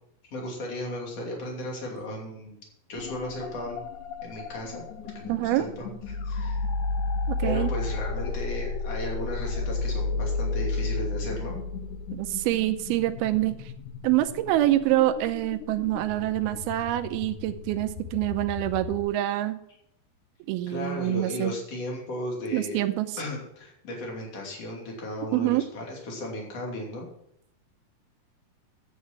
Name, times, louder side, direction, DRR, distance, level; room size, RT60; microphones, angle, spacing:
voice 1, 0.3-2.6 2.9-3.8 4.2-4.8 5.2-5.9 6.3-6.7 7.4-11.6 20.7-22.8 23.2-27.1, left 1 dB, 40° left, -1 dB, 3.5 m, -35 dB
sound 1, 3.0-19.0, left 3 dB, 80° left, 1.8 m, -33 dB
voice 2, 5.3-5.7 7.3-7.7 12.1-13.6 14.0-19.6 20.5-21.5 22.5-23.1 25.3-25.6, right 15 dB, 80° right, 8 dB, 2.5 m, -26 dB
9.5 x 8.3 x 5.9 m, 0.78 s
omnidirectional pair, 4.6 m